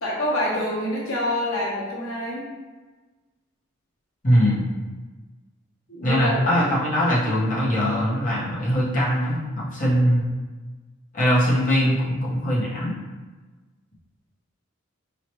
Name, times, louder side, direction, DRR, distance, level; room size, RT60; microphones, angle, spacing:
voice 1, 0.0-2.5 5.9-6.5, left 1 dB, 85° left, -5 dB, 1.0 m, -26 dB
voice 2, 4.2-4.7 6.0-10.3 11.1-12.9, equal, 40° left, -8 dB, 1.3 m, -21 dB
5.0 x 3.2 x 3.0 m, 1.3 s
head